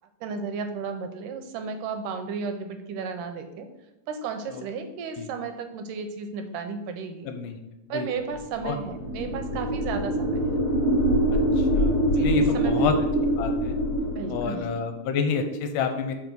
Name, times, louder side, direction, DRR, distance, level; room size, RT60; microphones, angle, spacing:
voice 1, 0.2-3.7 4.1-7.3 7.9-10.6 12.1-12.9 14.2-14.7, right 5 dB, 80° right, 6 dB, 2.2 m, -34 dB
voice 2, 7.3-7.6 7.9-8.1 8.6-8.8 11.6-12.9 13.4-13.8 14.3-16.1, left 6 dB, 80° left, 6 dB, 2.3 m, -29 dB
sound 1, 8.6-14.8, equal, 45° left, 2.1 m, -24 dB
5.2 x 5.1 x 6.1 m, 1.0 s
omnidirectional pair, 3.9 m